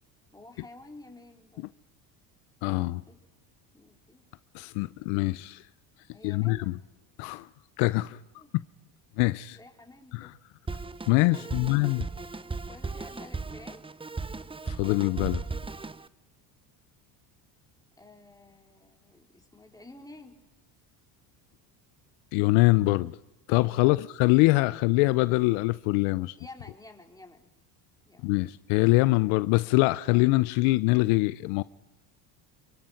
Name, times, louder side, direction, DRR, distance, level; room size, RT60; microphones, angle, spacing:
voice 1, 0.3-1.7 3.1-3.2 3.7-4.2 6.1-6.7 8.4-8.5 9.5-10.3 11.3-11.7 12.7-13.9 18.0-20.4 23.7-24.2 26.4-27.5 28.1-28.4, left 2 dB, 5° left, 3.9 m, -50 dB
voice 2, 2.6-3.0 4.5-5.6 6.2-6.7 7.2-7.5 7.8-8.2 9.2-9.6 10.1-10.3 11.1-12.0 14.7-15.4 22.3-23.2 23.5-26.3 28.2-31.6, left 22 dB, 75° left, 0.7 m, -24 dB
Drum kit, 10.7-16.1, right 3 dB, 10° right, 0.7 m, -36 dB
27.5 x 23.5 x 5.8 m
supercardioid pair, 80°, 50 cm